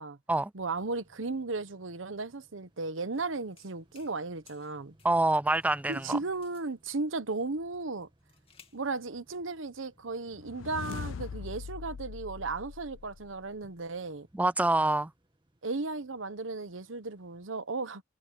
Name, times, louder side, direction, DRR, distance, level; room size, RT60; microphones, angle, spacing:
voice 1, 0.5-4.9 5.9-8.1 8.7-14.3 15.6-18.0, right 3 dB, 80° right, 1.1 m, -35 dB
sound 1, 0.6-17.5, right 1 dB, 25° right, 2.2 m, -64 dB
sound 2, 2.9-3.2 3.6-4.2 4.5-5.3 5.5-6.7 7.7-8.8, left 6 dB, 30° left, 2.8 m, -60 dB
voice 2, 5.0-6.2 14.3-15.1, right 2 dB, 10° right, 0.4 m, -26 dB
sound 3, 10.3-13.5, left 5 dB, 80° left, 0.4 m, -41 dB
head